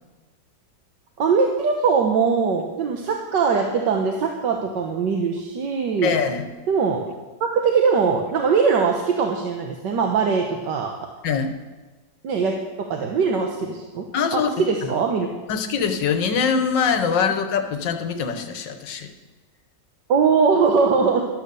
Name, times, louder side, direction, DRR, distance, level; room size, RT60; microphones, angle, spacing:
voice 1, 1.2-6.1 6.7-7.0 7.4-10.9 12.2-12.5 12.9-14.0 14.3-15.3 20.1-21.2, right 5 dB, 70° right, 2 dB, 1.7 m, -21 dB
voice 2, 6.0-6.5 11.2-11.5 14.1-14.5 14.8-14.9 15.5-19.1, left 6 dB, 75° left, 8 dB, 1.7 m, -23 dB
12.5 x 12.0 x 6.8 m, 1.2 s
omnidirectional pair, 2.0 m